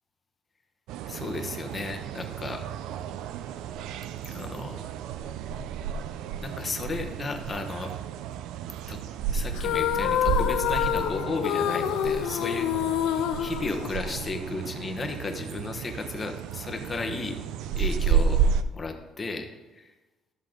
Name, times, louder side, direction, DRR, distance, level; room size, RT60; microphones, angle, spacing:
sound 1, 0.9-18.6, right 7 dB, 80° right, 0.4 m, -31 dB
voice 1, 1.1-2.6 4.2-4.9 6.4-7.9 8.9-9.0 9.3-17.4 17.8-18.5 18.7-19.9, left 3 dB, 20° left, 5 dB, 1.0 m, -34 dB
sound 2, 9.5-14.4, left 11 dB, 80° left, 0.5 m, -27 dB
13.0 x 7.3 x 3.8 m, 1.1 s
cardioid pair, 165°, 0 cm